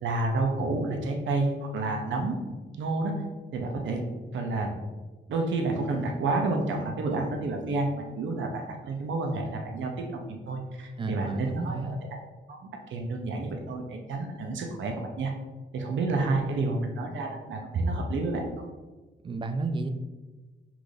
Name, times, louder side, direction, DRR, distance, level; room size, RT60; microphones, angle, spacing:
voice 1, 0.0-2.4 2.7-3.1 3.5-4.0 4.3-4.7 5.3-12.0 12.5-12.6 12.9-15.3 15.7-18.4, right 3 dB, 75° right, 2 dB, 0.6 m, -29 dB
voice 2, 11.0-12.0 19.2-19.9, right 3 dB, 25° right, 8 dB, 0.3 m, -32 dB
5.9 x 2.5 x 3.3 m, 1.3 s
wide cardioid pair, 140°, 20 cm